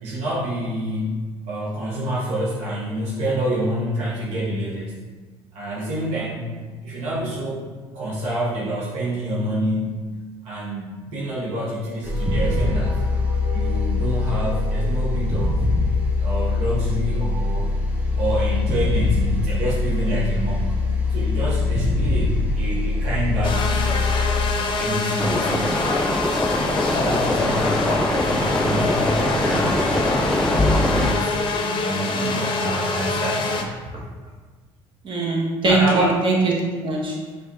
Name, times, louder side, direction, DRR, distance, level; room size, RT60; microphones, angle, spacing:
voice 1, 0.0-1.1 1.5-4.9 5.5-6.5 6.8-7.6 7.9-9.9 10.4-13.0 13.5-15.6 16.2-17.7 18.2-20.8 21.1-23.9 24.5-25.7 26.7-29.9 30.4-31.3 31.7-33.5 35.7-36.2, equal, 70° right, -5 dB, 1.0 m, -27 dB
sound 1, 12.0-24.5, left 3 dB, 10° right, 1.0 m, -22 dB
sound 2, 23.4-33.6, left 3 dB, 45° left, 0.6 m, -25 dB
sound 3, 25.2-31.1, left 1 dB, 5° left, 0.3 m, -23 dB
voice 2, 32.0-32.4 32.6-32.7 35.0-36.5 36.8-37.2, right 3 dB, 45° right, -3 dB, 1.2 m, -22 dB
4.8 x 2.5 x 4.1 m, 1.4 s
supercardioid pair, 75°, 12 cm